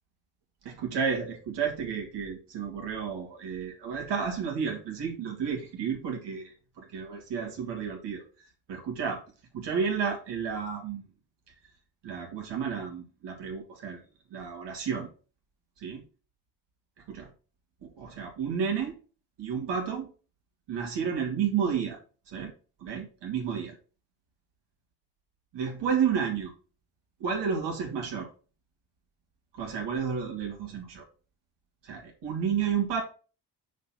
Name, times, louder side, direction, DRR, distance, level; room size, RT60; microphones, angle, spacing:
voice 1, 0.6-6.5 6.8-8.2 8.7-9.2 9.5-11.0 12.0-14.0 14.3-15.1 15.8-16.0 17.1-17.3 17.8-18.9 19.4-20.1 20.7-22.0 22.3-22.5 22.8-23.7 25.5-26.5 27.2-28.3 29.6-31.0 31.8-33.0, right 7 dB, 85° right, 2 dB, 2.3 m, -31 dB
6.3 x 4.2 x 5.8 m, 0.36 s
cardioid pair, 135°, 41 cm